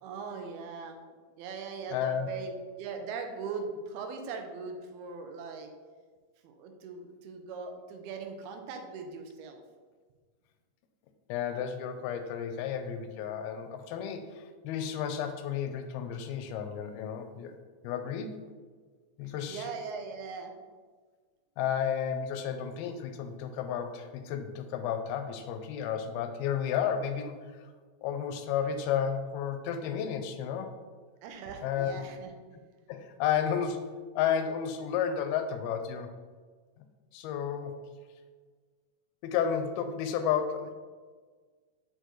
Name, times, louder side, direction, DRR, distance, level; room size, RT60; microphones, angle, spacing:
voice 1, 0.0-1.0 1.4-5.7 6.4-9.6 19.5-20.5 31.2-32.3, right 5 dB, 90° right, 4 dB, 2.7 m, -40 dB
voice 2, 1.9-2.3 11.3-17.5 17.8-18.5 19.2-19.7 21.6-27.7 28.0-30.7 31.6-32.0 32.9-33.9 34.2-36.1 37.1-37.8 39.2-40.7, left 8 dB, 90° left, 8 dB, 2.5 m, -32 dB
6.6 x 4.5 x 4.5 m, 1.5 s
omnidirectional pair, 4.4 m